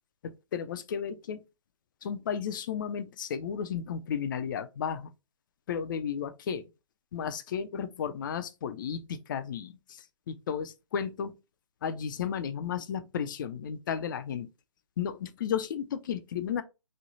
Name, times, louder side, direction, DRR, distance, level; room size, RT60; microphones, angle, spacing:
voice 1, 0.2-1.4 2.0-5.1 5.7-6.7 7.1-11.4 11.8-14.5 15.0-16.6, left 7 dB, 40° left, 0.4 m, -33 dB
3.1 x 2.2 x 3.9 m
hypercardioid pair, 145°, 17 cm